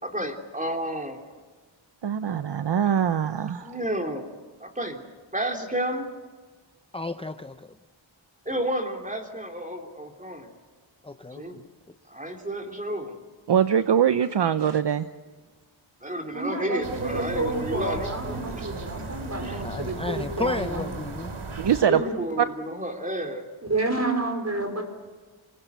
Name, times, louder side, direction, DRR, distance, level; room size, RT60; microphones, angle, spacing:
voice 1, 0.0-1.2 3.6-4.3 4.6-5.0 5.3-6.1 8.4-10.5 11.3-11.6 12.1-13.2 16.0-18.6 19.4-19.6 22.0-23.5, right 1 dB, 15° right, 3 dB, 3.3 m, -31 dB
voice 2, 2.0-3.8 13.5-15.1 21.6-22.0 22.4-22.5, right 8 dB, 60° right, 11 dB, 0.8 m, -22 dB
voice 3, 6.9-7.7 11.0-11.7 19.6-21.3, left 2 dB, 10° left, 9 dB, 0.7 m, -32 dB
voice 4, 16.3-20.9 21.9-22.1 23.6-24.8, right 2 dB, 30° right, 5 dB, 4.9 m, -29 dB
sound 1, 16.8-21.8, right 3 dB, 80° right, 3.3 m, -36 dB
26.5 x 20.0 x 8.2 m, 1.4 s
wide cardioid pair, 70°, 48 cm